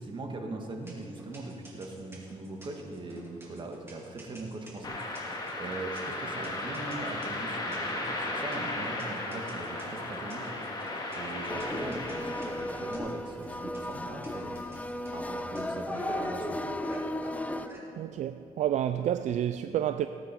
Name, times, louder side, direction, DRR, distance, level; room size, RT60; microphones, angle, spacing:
voice 1, 0.0-10.5 11.2-14.6 15.1-16.7, right 2 dB, 40° right, 1.9 m, -40 dB
sound 1, 0.7-17.8, equal, 20° right, 3.3 m, -46 dB
sound 2, 4.8-12.9, left 2 dB, 35° left, 2.2 m, -36 dB
sound 3, 11.5-17.7, left 1 dB, 10° left, 0.5 m, -35 dB
voice 2, 18.0-20.1, right 11 dB, 65° right, 0.4 m, -29 dB
18.0 x 9.2 x 4.5 m
cardioid pair, 100°, 13 cm